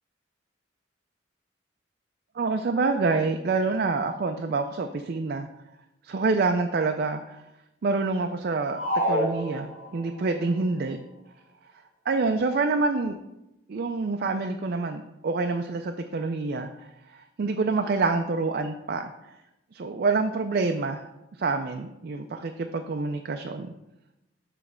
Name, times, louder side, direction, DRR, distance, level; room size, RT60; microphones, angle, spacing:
voice 1, 2.4-5.5 6.0-7.4 7.8-8.8 9.1-11.0 12.1-13.2 13.7-16.9 17.1-19.1 19.7-21.0 21.4-23.7, right 3 dB, 50° right, 5 dB, 0.4 m, -27 dB
sound 1, 8.7-10.2, equal, 40° left, 1.8 m, -28 dB
7.1 x 3.3 x 6.1 m, 0.92 s
head